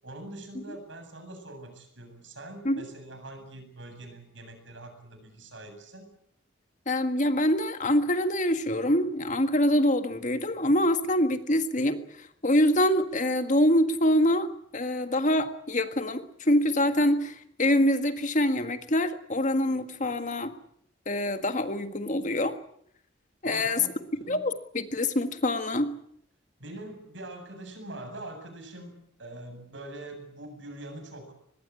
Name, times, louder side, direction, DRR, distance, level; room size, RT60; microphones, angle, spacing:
voice 1, 0.0-6.1 23.4-24.4 26.6-31.3, right 1 dB, 65° right, 6 dB, 7.8 m, -43 dB
voice 2, 6.9-12.0 12.4-14.5 14.7-20.5 21.1-22.5 23.4-23.8 24.3-25.9, left 1 dB, 40° left, 8 dB, 1.8 m, -25 dB
24.5 x 21.0 x 8.5 m, 0.67 s
head